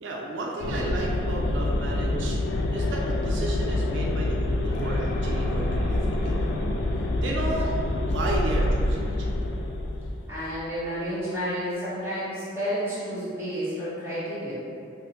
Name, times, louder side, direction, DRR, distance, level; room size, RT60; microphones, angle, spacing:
voice 1, 0.0-2.4 2.7-6.6 7.2-9.4, right 2 dB, 80° right, -2 dB, 0.4 m, -33 dB
sound 1, 0.6-10.2, left 1 dB, 70° left, 0.3 m, -26 dB
sound 2, 4.7-10.3, equal, 45° left, 0.7 m, -42 dB
voice 2, 10.3-14.5, equal, 15° right, -14 dB, 1.3 m, -31 dB
5.1 x 2.1 x 2.8 m, 2.5 s
head